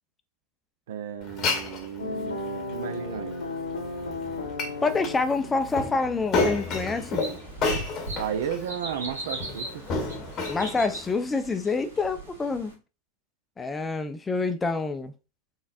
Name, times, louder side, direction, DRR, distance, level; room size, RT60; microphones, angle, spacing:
voice 1, 0.9-3.4 8.2-10.1, right 8 dB, 55° right, 0.6 m, -34 dB
Glass, 1.2-11.1, left 3 dB, 30° left, 0.9 m, -32 dB
sound 1, 2.0-7.0, left 2 dB, 70° left, 0.8 m, -36 dB
voice 2, 4.8-7.2 10.5-12.8 13.6-15.1, left 4 dB, 15° left, 0.5 m, -27 dB
sound 2, 6.5-12.7, right 2 dB, 75° right, 1.5 m, -39 dB
4.0 x 3.9 x 2.5 m
figure-of-eight pair, 90°, 0 cm